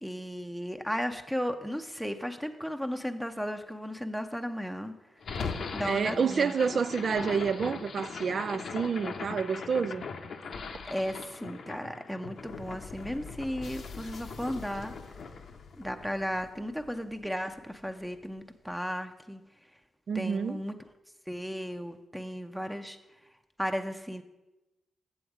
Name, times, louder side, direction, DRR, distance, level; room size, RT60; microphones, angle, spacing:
voice 1, 0.0-4.9 5.7-6.6 10.8-14.9 15.8-19.4 20.1-20.7 21.3-23.0 23.6-24.2, equal, ahead, 0.7 m, -35 dB
sound 1, 5.2-17.4, left 5 dB, 70° left, 0.7 m, -40 dB
voice 2, 5.8-10.1 20.1-20.6, right 6 dB, 60° right, 0.3 m, -29 dB
7.8 x 7.0 x 4.9 m
supercardioid pair, 50°, 0 cm